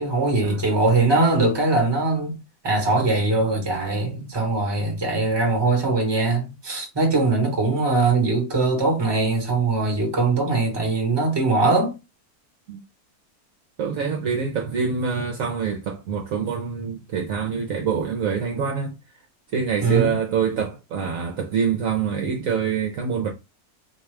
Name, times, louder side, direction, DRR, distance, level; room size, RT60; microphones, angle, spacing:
voice 1, 0.0-2.4 2.6-12.0 19.8-20.1, right 3 dB, 20° right, 1.1 m, -21 dB
voice 2, 13.8-18.9 19.5-23.3, right 6 dB, 65° right, 1.0 m, -25 dB
4.2 x 2.3 x 3.2 m
omnidirectional pair, 1.7 m